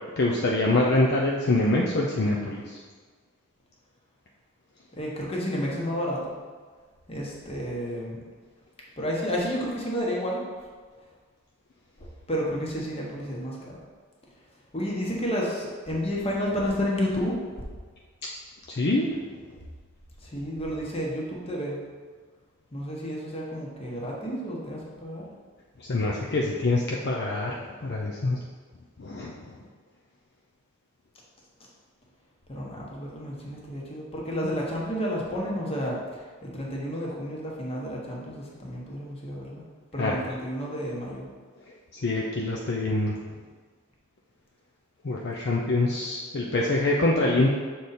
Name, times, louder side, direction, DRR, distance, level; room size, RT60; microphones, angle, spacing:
voice 1, 0.2-2.8 18.7-19.1 25.8-28.4 29.0-29.3 40.0-40.2 41.9-43.2 45.0-47.5, left 2 dB, 50° left, -2 dB, 0.5 m, -25 dB
voice 2, 4.9-6.4 7.1-8.2 9.0-10.7 12.0-13.8 14.7-17.4 20.2-21.8 22.7-25.2 32.5-39.6 39.9-41.3, equal, 25° left, -3 dB, 1.2 m, -31 dB
6.6 x 4.0 x 4.2 m, 1.5 s
head